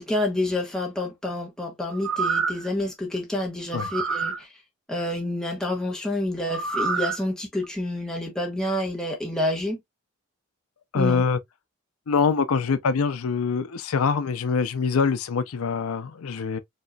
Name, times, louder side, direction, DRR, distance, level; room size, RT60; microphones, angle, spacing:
voice 1, 0.0-4.5 4.9-9.8 10.9-11.2, left 1 dB, 5° left, 1.2 m, -28 dB
sound 1, 1.9-2.7 3.7-4.4 6.5-7.2 7.6-7.7, right 5 dB, 70° right, 0.8 m, -27 dB
voice 2, 10.9-11.4 12.1-16.6, left 5 dB, 80° left, 0.5 m, -24 dB
5.3 x 2.9 x 2.2 m
head